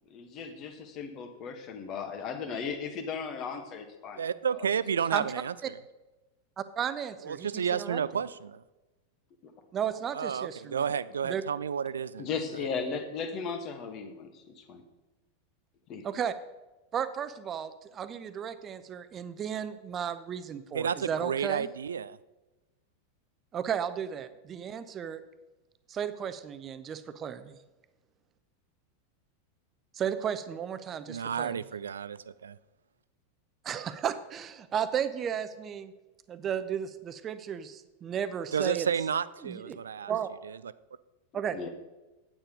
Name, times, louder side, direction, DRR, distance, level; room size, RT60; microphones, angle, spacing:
voice 1, 0.1-4.2 9.4-9.5 12.2-14.8 15.9-16.0 41.5-41.7, left 5 dB, 40° left, 6 dB, 1.6 m, -36 dB
voice 2, 4.2-5.8 7.2-8.6 10.1-12.3 20.7-22.2 30.8-32.6 38.5-40.1 40.4-40.7, right 7 dB, 70° right, 18 dB, 0.4 m, -31 dB
voice 3, 6.6-8.0 9.7-10.9 11.2-11.4 16.0-16.3 16.9-21.7 23.5-25.2 25.9-27.6 29.9-31.6 33.6-35.9 36.3-38.9 39.4-39.8 40.1-40.3 41.3-41.7, right 8 dB, 30° right, 12 dB, 0.8 m, -34 dB
9.0 x 8.7 x 5.2 m, 1.1 s
figure-of-eight pair, 90°, 0 cm